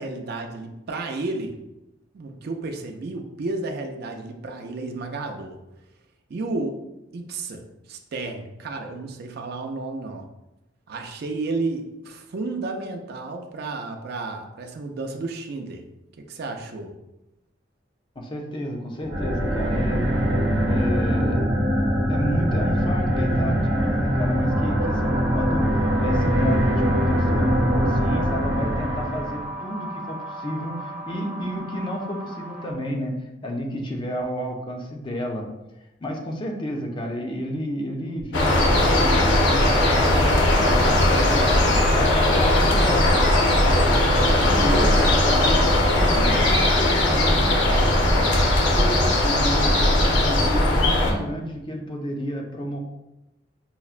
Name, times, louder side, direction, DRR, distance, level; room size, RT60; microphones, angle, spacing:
voice 1, 0.0-1.5 2.1-5.6 6.3-6.8 7.1-10.3 10.9-15.8 16.3-16.9 41.7-42.3, right 3 dB, 60° right, 4 dB, 0.4 m, -32 dB
voice 2, 18.2-20.1 20.6-21.5 22.1-25.7 26.0-33.1 33.4-35.5 36.0-41.5 41.9-43.1 43.6-43.8 44.4-48.3 48.6-52.8, equal, 25° left, 1 dB, 0.5 m, -31 dB
sound 1, 19.0-29.5, equal, 85° right, 0.8 m, -22 dB
sound 2, 24.5-32.7, right 1 dB, 10° right, 0.7 m, -35 dB
sound 3, 38.3-51.1, left 1 dB, 70° left, 0.7 m, -19 dB
5.5 x 2.1 x 2.4 m, 0.95 s
head